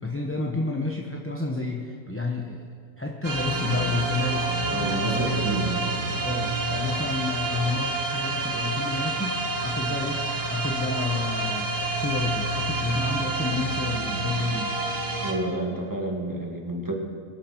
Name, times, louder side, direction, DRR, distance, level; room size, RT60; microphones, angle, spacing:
voice 1, 0.0-2.7 3.0-5.5 6.2-14.8, left 3 dB, 10° left, 0 dB, 0.7 m, -30 dB
sound 1, 3.2-15.3, right 3 dB, 60° right, 2.1 m, -28 dB
voice 2, 4.7-6.0 15.2-17.0, right 1 dB, 15° right, 0 dB, 1.9 m, -30 dB
23.5 x 10.0 x 4.5 m, 2.2 s
omnidirectional pair, 1.5 m